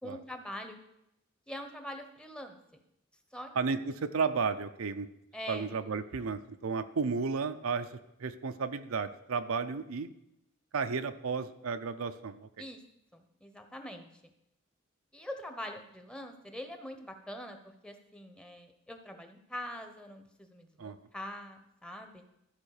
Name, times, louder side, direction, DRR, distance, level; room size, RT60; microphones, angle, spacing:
voice 1, 0.0-0.8 1.5-2.6 3.3-3.5 5.3-5.7 12.6-12.8 13.1-14.2 15.1-22.2, equal, 5° left, 5 dB, 0.8 m, -43 dB
voice 2, 3.6-5.1 5.5-10.1 10.7-12.5 20.8-21.0, right 5 dB, 80° right, 10 dB, 0.6 m, -33 dB
13.0 x 4.6 x 6.5 m, 0.83 s
head